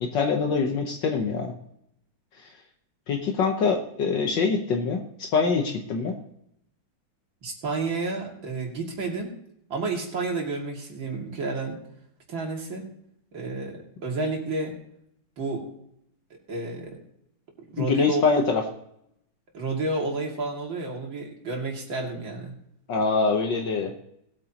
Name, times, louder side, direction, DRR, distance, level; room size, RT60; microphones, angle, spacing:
voice 1, 0.0-1.5 3.1-6.1 17.8-18.6 22.9-24.0, left 5 dB, 65° left, 3 dB, 1.7 m, -24 dB
voice 2, 7.4-9.3 9.7-11.8 12.3-12.9 13.3-14.8 15.4-15.7 16.3-17.0 17.7-18.4 19.5-22.5, right 3 dB, 70° right, 0 dB, 3.2 m, -31 dB
19.5 x 8.9 x 3.0 m, 0.76 s
omnidirectional pair, 2.2 m